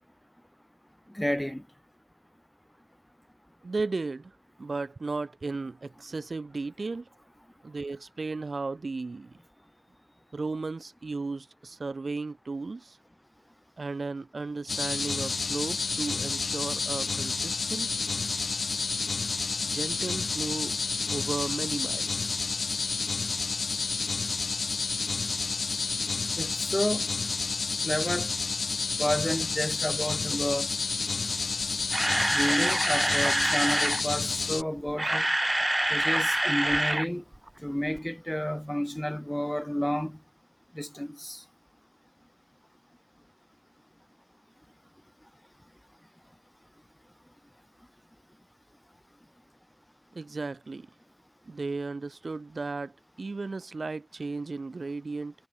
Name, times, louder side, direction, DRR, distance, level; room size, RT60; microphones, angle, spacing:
voice 1, 1.1-1.6 26.3-27.1 27.8-28.3 29.0-30.7 32.3-35.2 35.9-37.2 37.6-40.2 40.7-41.4, equal, 5° left, 3.2 m, -30 dB
voice 2, 3.6-7.1 7.6-9.3 10.3-13.0 13.8-17.9 19.6-20.7 21.1-22.4 50.1-50.9 51.5-55.3, right 3 dB, 65° right, 4.4 m, -35 dB
sound 1, 14.7-34.6, left 4 dB, 85° left, 3.2 m, -30 dB
Camera, 31.6-34.0 34.8-37.1 37.3-37.5 38.0-38.1, right 1 dB, 20° right, 0.7 m, -26 dB
wide cardioid pair, 65°, 0 cm